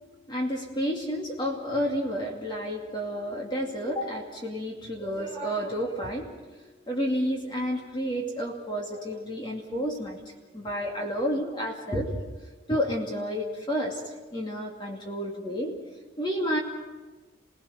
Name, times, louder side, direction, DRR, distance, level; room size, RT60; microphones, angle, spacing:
voice 1, 0.3-10.2 10.5-12.2 12.7-15.7 16.2-16.6, equal, 25° left, -1 dB, 2.5 m, -30 dB
29.5 x 19.0 x 5.2 m, 1.2 s
head